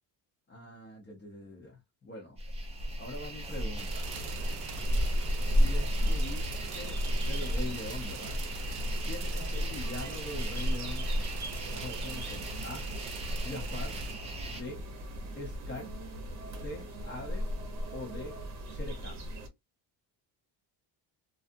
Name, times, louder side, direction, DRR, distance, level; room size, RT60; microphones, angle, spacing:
voice 1, 0.5-2.4 3.0-4.1 5.6-7.0 7.3-8.4 9.0-11.1 11.7-12.9 13.4-14.0 14.4-14.8 15.4-15.9 16.6-17.5 17.9-18.4 18.7-19.2, left 2 dB, 25° left, 0.7 m, -42 dB
sound 1, 2.4-14.6, equal, 15° right, 0.5 m, -32 dB
sound 2, 3.8-14.1, right 9 dB, 75° right, 0.7 m, -46 dB
sound 3, 4.0-19.5, equal, 40° right, 0.8 m, -40 dB
2.5 x 2.4 x 2.5 m
cardioid pair, 175°, 42 cm